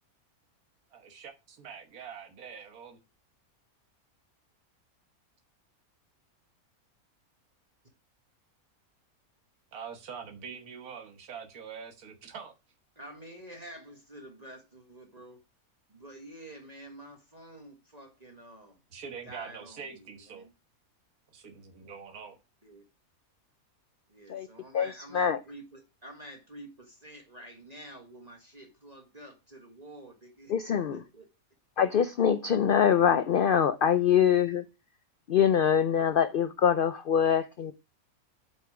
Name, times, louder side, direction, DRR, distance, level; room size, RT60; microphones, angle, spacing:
voice 1, 0.9-3.0 9.7-12.5 18.9-20.4 21.3-22.4, right 6 dB, 80° right, 1.7 m, -44 dB
voice 2, 13.0-15.4 15.9-18.8 19.2-20.5 22.6-22.8 24.1-30.5 30.9-31.3, right 1 dB, 30° right, 1.5 m, -48 dB
voice 3, 24.7-25.4 30.5-31.0 31.8-34.6 35.3-37.7, left 8 dB, 80° left, 0.4 m, -24 dB
7.5 x 5.3 x 4.8 m
omnidirectional pair, 1.5 m